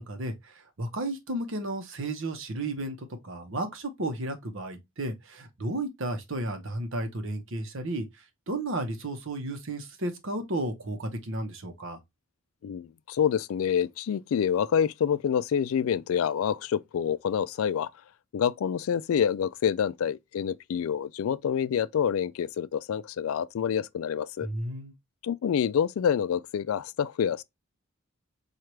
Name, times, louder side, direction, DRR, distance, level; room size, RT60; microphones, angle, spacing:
voice 1, 0.0-8.1 8.5-12.0 24.4-24.9, right 1 dB, 60° right, 0.9 m, -33 dB
voice 2, 12.6-17.9 18.3-24.5 25.2-27.4, left 8 dB, 70° left, 0.3 m, -27 dB
4.5 x 2.4 x 3.1 m
head